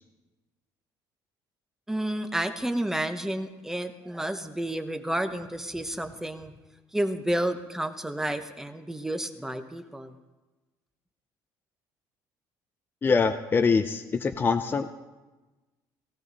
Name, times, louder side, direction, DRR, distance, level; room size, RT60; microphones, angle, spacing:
voice 1, 1.9-6.5 6.9-10.1, right 1 dB, 5° right, 8 dB, 1.0 m, -30 dB
voice 2, 13.0-14.9, left 5 dB, 25° left, 6 dB, 0.7 m, -24 dB
17.5 x 17.0 x 4.1 m, 1.1 s
cardioid pair, 130°, 8 cm